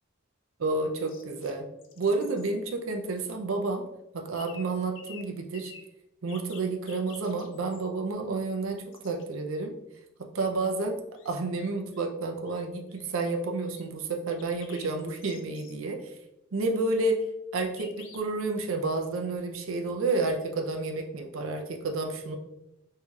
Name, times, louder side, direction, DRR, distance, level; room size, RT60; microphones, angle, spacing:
voice 1, 0.6-1.7 2.0-3.8 4.1-5.7 6.2-9.7 10.2-16.0 16.5-17.2 17.5-22.4, right 3 dB, 80° right, 4 dB, 0.6 m, -30 dB
sound 1, 1.1-1.5 1.8-2.5 4.4-4.7 5.0-5.3 5.5-5.9 6.3-7.8 8.9-9.2 11.1-12.1 12.5-12.6 12.9-13.2 13.7-13.8 14.3-15.7 17.8-18.2, left 6 dB, 70° left, 0.6 m, -50 dB
5.5 x 2.7 x 2.4 m, 0.88 s
head